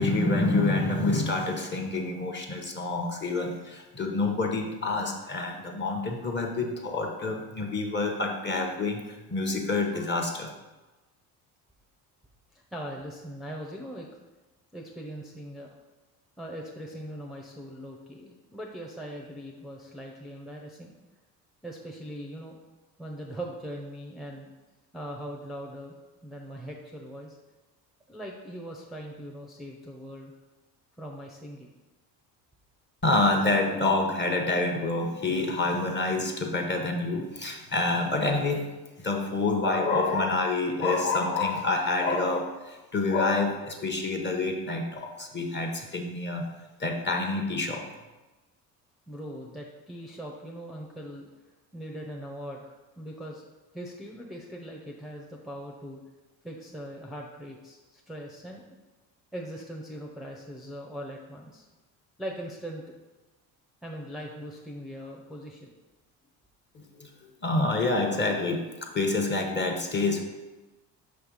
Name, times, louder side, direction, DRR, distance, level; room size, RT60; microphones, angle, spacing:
voice 1, 0.0-10.5 33.0-38.7 39.0-46.5 46.8-47.8 66.7-67.1 67.4-70.2, left 3 dB, 25° left, 2 dB, 1.1 m, -27 dB
voice 2, 12.5-14.1 14.7-15.7 16.4-20.9 21.6-22.6 23.0-24.5 24.9-26.0 26.2-27.4 28.1-30.3 31.0-31.7 49.1-51.3 51.7-53.5 53.7-56.0 56.4-58.6 59.3-61.7 62.2-62.8 63.8-65.7, equal, ahead, -1 dB, 0.7 m, -40 dB
5.5 x 3.3 x 5.5 m, 1.1 s
supercardioid pair, 75°, 45 cm